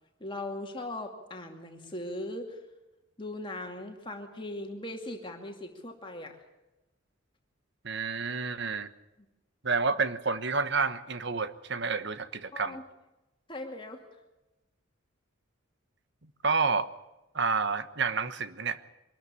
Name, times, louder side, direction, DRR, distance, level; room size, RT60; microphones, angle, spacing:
voice 1, 0.2-2.6 3.2-6.4 12.5-12.8 13.5-14.0, left 1 dB, 25° left, 3 dB, 2.4 m, -39 dB
voice 2, 7.8-8.9 9.6-12.8 16.4-16.9 17.3-18.8, right 4 dB, 55° right, 12 dB, 1.2 m, -29 dB
24.5 x 13.0 x 9.8 m, 1.0 s
head